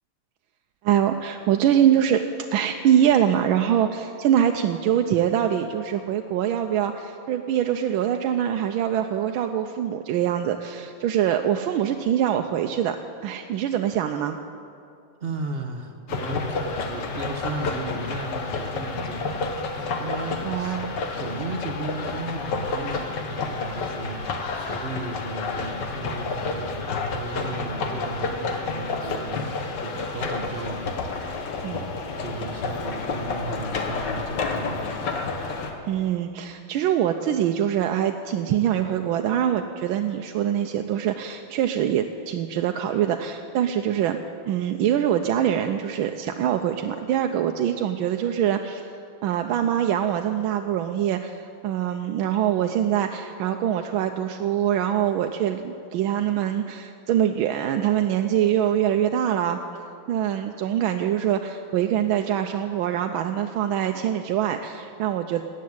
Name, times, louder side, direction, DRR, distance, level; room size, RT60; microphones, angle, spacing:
voice 1, 0.8-2.2 2.5-14.4 20.4-20.9 31.6-31.8 35.9-44.2 44.5-48.9 49.2-59.6 60.1-65.4, right 10 dB, 80° right, 5 dB, 1.4 m, -24 dB
voice 2, 15.2-19.6 20.0-29.6 29.8-31.5 32.2-35.3, right 3 dB, 50° right, 5 dB, 0.7 m, -35 dB
sound 1, 16.1-35.7, left 4 dB, 60° left, 1.7 m, -30 dB
14.0 x 8.5 x 9.4 m, 2.5 s
omnidirectional pair, 2.2 m